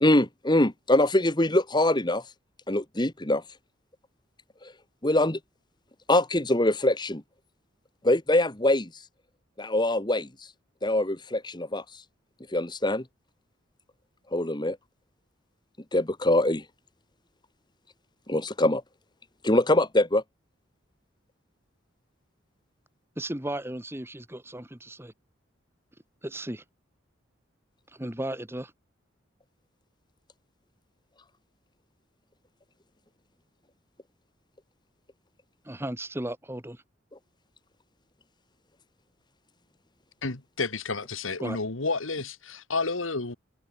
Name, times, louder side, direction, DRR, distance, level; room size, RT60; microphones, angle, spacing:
voice 1, 0.0-2.2 2.7-3.4 5.0-5.4 6.1-7.2 8.0-8.9 9.6-10.3 10.8-11.8 12.5-13.0 14.3-14.8 15.9-16.6 18.3-18.8 19.4-20.2, left 1 dB, 20° left, 1.7 m, -23 dB
voice 2, 23.2-25.1 26.2-26.6 28.0-28.7 35.7-36.8 41.4-41.6, right 1 dB, 10° right, 1.6 m, -35 dB
voice 3, 40.2-43.4, left 3 dB, 85° left, 2.0 m, -31 dB
open air
head